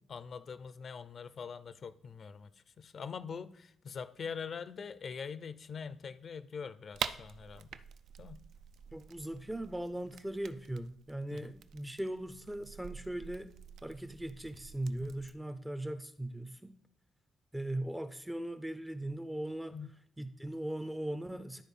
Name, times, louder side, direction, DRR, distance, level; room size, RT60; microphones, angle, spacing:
voice 1, 0.1-7.8 8.2-8.4 11.3-11.5 19.7-19.9, left 6 dB, 45° left, 14 dB, 0.5 m, -43 dB
sound 1, 6.9-15.4, right 8 dB, 65° right, 0.4 m, -46 dB
voice 2, 8.9-13.6 13.8-16.8 17.5-19.8 20.2-21.6, right 1 dB, 5° right, 12 dB, 0.5 m, -39 dB
11.5 x 4.3 x 5.4 m, 0.69 s
cardioid pair, 130°, 0 cm